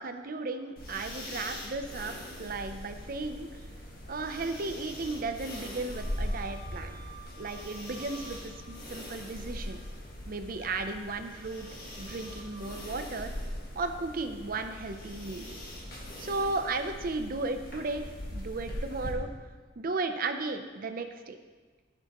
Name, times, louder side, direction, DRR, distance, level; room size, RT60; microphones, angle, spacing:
voice 1, 0.0-2.1 2.4-3.5 4.1-6.9 7.4-9.8 10.3-11.7 12.0-13.3 13.8-15.5 16.2-19.3 19.8-21.4, right 3 dB, 45° right, 8 dB, 0.6 m, -35 dB
sound 1, 0.8-19.1, left 1 dB, 50° left, 1.8 m, -41 dB
Wind instrument woodwind instrument, 5.9-8.9 9.3-10.0 10.6-12.8, right 1 dB, 5° left, 2.8 m, -52 dB
15.0 x 6.7 x 3.0 m, 1.4 s
head